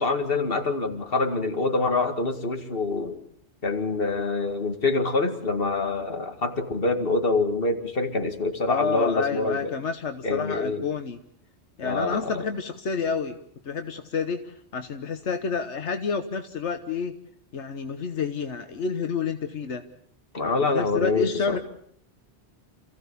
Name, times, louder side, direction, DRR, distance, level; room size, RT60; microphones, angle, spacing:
voice 1, 0.0-3.2 3.6-9.7 10.2-10.8 11.8-12.5 20.3-21.6, left 3 dB, 55° left, 6 dB, 2.4 m, -25 dB
voice 2, 8.7-11.2 11.8-13.4 13.6-17.1 17.5-19.8 20.6-21.6, left 5 dB, 85° left, 7 dB, 1.5 m, -29 dB
28.0 x 16.0 x 8.4 m, 0.67 s
omnidirectional pair, 1.2 m